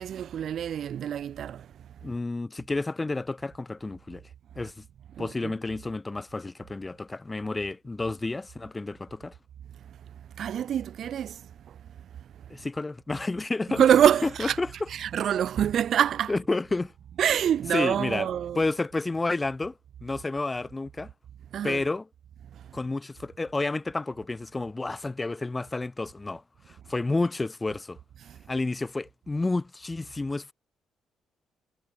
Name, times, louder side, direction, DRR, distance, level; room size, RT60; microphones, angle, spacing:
voice 1, 0.0-1.7 5.2-5.5 10.4-11.4 13.8-14.6 14.9-16.3 17.2-18.6 21.5-21.8 28.3-28.4, right 9 dB, 60° right, 0.8 m, -25 dB
voice 2, 2.0-4.2 4.6-4.8 5.2-9.3 12.5-13.8 14.4-14.7 16.3-16.9 17.7-18.3 18.6-19.7 20.0-21.1 21.6-22.1 22.7-26.4 26.7-28.0 28.5-30.5, left 3 dB, 25° left, 1.9 m, -30 dB
hypercardioid pair, 45°, 0 cm